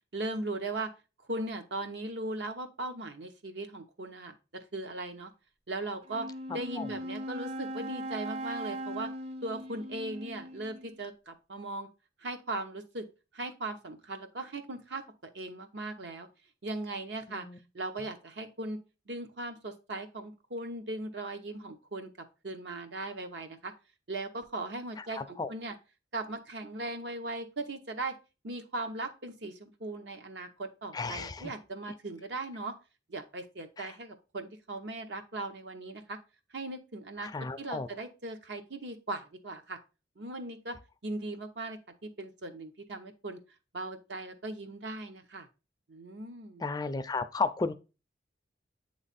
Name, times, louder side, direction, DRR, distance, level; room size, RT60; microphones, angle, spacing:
voice 1, 0.1-0.9 1.3-5.3 5.7-9.1 9.4-11.9 12.2-13.0 13.3-16.3 16.6-17.5 17.7-18.8 19.1-22.1 22.4-23.7 24.1-25.7 26.1-28.1 28.4-32.7 33.1-36.2 36.5-39.8 40.2-40.8 41.0-43.4 43.7-45.5 45.9-46.6, right 2 dB, 75° right, 0.9 m, -38 dB
Wind instrument woodwind instrument, 6.0-11.0, right 1 dB, 35° right, 0.5 m, -39 dB
voice 2, 6.5-6.9 17.3-17.6 25.0-25.5 30.9-31.5 33.8-33.9 37.3-37.9 46.6-47.7, left 4 dB, 20° left, 0.3 m, -34 dB
8.2 x 3.2 x 4.1 m
head